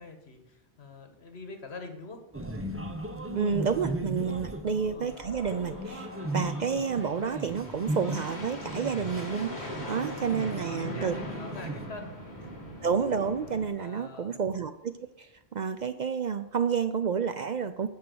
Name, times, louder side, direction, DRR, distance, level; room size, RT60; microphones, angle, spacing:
voice 1, 0.0-2.2 4.6-5.2 10.1-12.5 13.7-14.4, left 3 dB, 75° left, 5 dB, 1.7 m, -45 dB
sound 1, 2.3-11.9, right 1 dB, 15° right, 0.9 m, -37 dB
voice 2, 3.3-11.1 12.8-17.9, right 6 dB, 55° right, 11 dB, 0.6 m, -30 dB
sound 2, 5.0-13.7, equal, 45° left, 2.5 m, -41 dB
10.5 x 5.5 x 7.8 m, 0.88 s
omnidirectional pair, 1.1 m